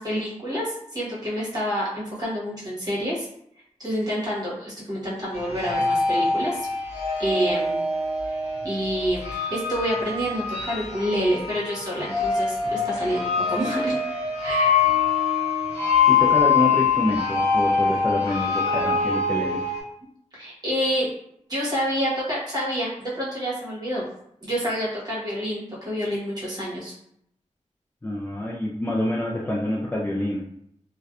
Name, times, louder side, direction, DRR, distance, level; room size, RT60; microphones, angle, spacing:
voice 1, 0.0-3.3 3.8-6.7 7.2-7.8 8.6-14.0 14.4-14.8 20.3-21.1 21.5-24.1 24.4-26.9, equal, 30° right, -7 dB, 1.1 m, -28 dB
sound 1, 5.3-19.8, left 5 dB, 55° right, 0.8 m, -24 dB
voice 2, 16.1-19.6 28.0-30.4, left 1 dB, 15° left, -4 dB, 0.3 m, -27 dB
2.5 x 2.1 x 2.3 m, 0.73 s
wide cardioid pair, 100°, 13 cm